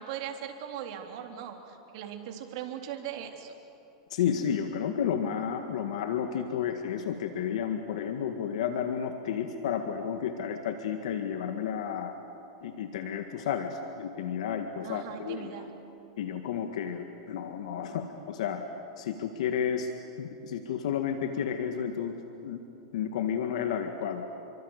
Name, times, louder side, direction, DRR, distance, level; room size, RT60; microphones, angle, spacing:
voice 1, 0.0-3.5 14.8-15.7, right 9 dB, 55° right, 4 dB, 3.4 m, -39 dB
voice 2, 4.1-12.1 12.6-15.6 16.2-18.6 19.0-19.9 20.2-22.1 22.4-22.6 22.9-24.2, left 8 dB, 75° left, 6 dB, 1.8 m, -32 dB
29.0 x 24.0 x 8.1 m, 2.9 s
supercardioid pair, 140°, 4 cm